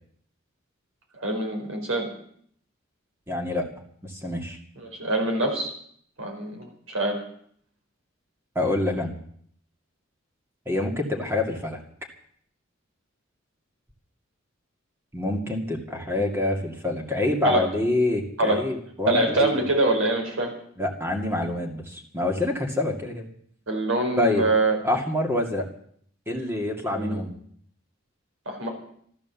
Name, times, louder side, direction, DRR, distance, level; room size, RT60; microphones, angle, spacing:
voice 1, 1.2-2.1 4.8-5.7 6.2-7.2 16.1-16.2 17.4-17.7 18.4-18.6 19.1-20.5 23.7-24.8 26.9-27.2 28.5-28.7, right 2 dB, 80° right, 2 dB, 4.6 m, -24 dB
voice 2, 3.3-3.7 4.0-4.6 8.6-9.2 10.7-11.8 15.1-19.6 20.8-23.3 24.2-24.4 24.8-25.7 26.3-27.3, left 2 dB, 10° right, 1 dB, 2.3 m, -26 dB
14.0 x 13.0 x 7.2 m, 0.63 s
head